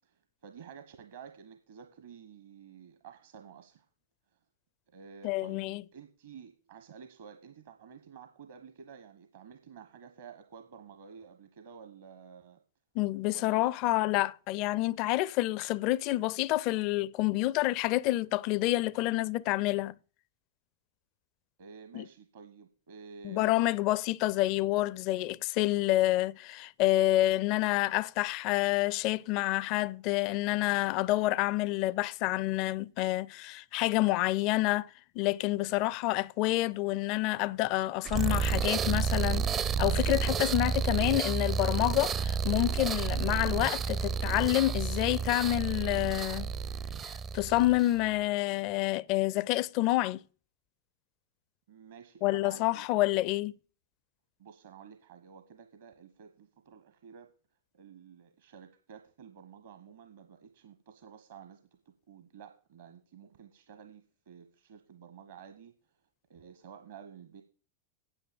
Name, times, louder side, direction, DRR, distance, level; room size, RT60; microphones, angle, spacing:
voice 1, 0.0-3.9 4.3-4.4 4.9-12.6 13.3-13.9 21.6-23.7 51.7-52.9 54.4-57.3 57.7-66.0 66.3-67.4, right 6 dB, 60° right, 1.1 m, -51 dB
voice 2, 5.2-5.8 13.0-19.9 21.9-22.0 23.2-46.5 47.0-50.2 52.2-53.5, left 17 dB, 40° left, 0.4 m, -28 dB
sound 1, 38.0-48.0, right 6 dB, 25° right, 0.5 m, -31 dB
9.1 x 8.1 x 7.0 m
figure-of-eight pair, 90°, 0 cm